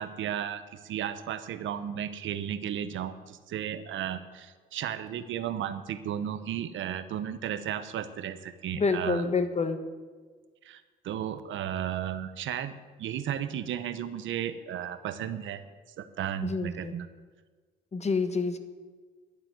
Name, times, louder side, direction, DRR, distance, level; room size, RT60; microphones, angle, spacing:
voice 1, 0.0-9.2 10.6-15.6 16.0-17.1, right 10 dB, 75° right, 12 dB, 0.9 m, -34 dB
voice 2, 8.7-9.8 16.4-16.9 17.9-18.6, left 4 dB, 35° left, 9 dB, 1.3 m, -28 dB
11.5 x 7.5 x 9.4 m, 1.4 s
cardioid pair, 90°, 20 cm